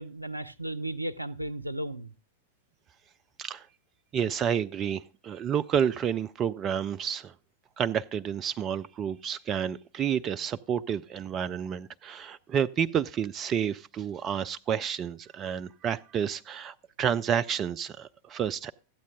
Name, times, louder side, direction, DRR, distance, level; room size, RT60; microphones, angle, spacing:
voice 1, 0.0-2.1, right 1 dB, 90° right, 0.6 m, -35 dB
voice 2, 4.1-7.3 7.8-18.7, right 8 dB, 30° right, 0.4 m, -30 dB
13.5 x 8.4 x 3.5 m
figure-of-eight pair, 90°, 0 cm